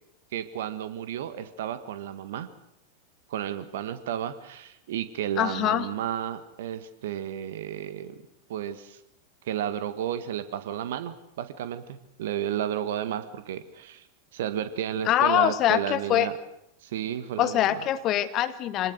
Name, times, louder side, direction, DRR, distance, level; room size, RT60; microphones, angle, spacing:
voice 1, 0.3-2.5 3.3-8.2 8.5-9.0 9.4-14.0 14.3-16.4 16.8-17.8, right 10 dB, 55° right, 11 dB, 1.6 m, -32 dB
voice 2, 5.4-5.9 15.1-16.3 17.4-18.9, left 12 dB, 35° left, 13 dB, 1.3 m, -24 dB
25.0 x 19.0 x 6.5 m, 0.79 s
figure-of-eight pair, 90°, 0 cm